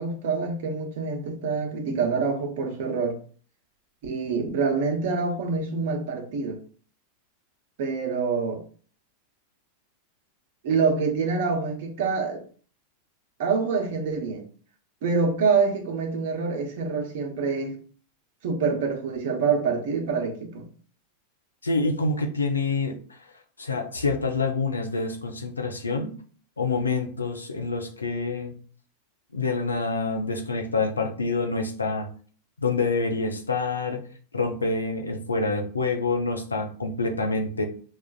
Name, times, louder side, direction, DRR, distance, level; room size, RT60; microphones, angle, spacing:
voice 1, 0.0-3.2 4.0-6.6 7.8-8.6 10.6-12.4 13.4-14.4 15.0-17.7 18.4-20.7, right 5 dB, 60° right, 0.9 m, -26 dB
voice 2, 21.6-23.2 23.6-26.2 26.6-28.5 29.3-32.1 32.6-34.0 34.3-37.6, left 3 dB, 90° left, 0.6 m, -27 dB
5.4 x 2.4 x 2.3 m
hypercardioid pair, 95°, 0 cm